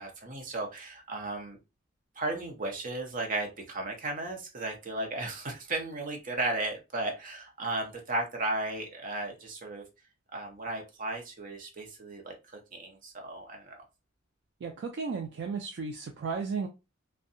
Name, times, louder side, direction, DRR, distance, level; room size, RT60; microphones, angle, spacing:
voice 1, 0.0-1.6 2.2-9.8 10.3-13.8, right 2 dB, 45° right, 2 dB, 0.7 m, -35 dB
voice 2, 14.6-16.7, right 5 dB, 60° right, 3 dB, 0.3 m, -34 dB
2.6 x 2.2 x 2.5 m, 0.27 s
head